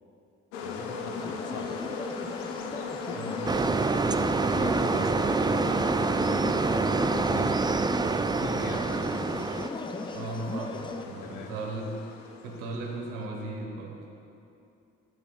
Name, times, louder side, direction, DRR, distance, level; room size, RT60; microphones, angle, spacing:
sound 1, 0.5-13.1, left 5 dB, 85° left, 0.8 m, -37 dB
voice 1, 0.6-1.9 4.5-5.9 7.1-7.7 8.3-8.9 11.2-11.5, left 4 dB, 60° left, 4 dB, 1.3 m, -40 dB
sound 2, 1.1-11.1, left 2 dB, 15° left, 0.7 m, -39 dB
voice 2, 3.1-3.5 10.1-12.0 12.4-14.1, right 2 dB, 85° right, 1 dB, 1.4 m, -37 dB
sound 3, 3.5-9.7, right 4 dB, 15° right, 0.3 m, -26 dB
25.5 x 8.8 x 2.4 m, 2.8 s
hypercardioid pair, 45°, 35 cm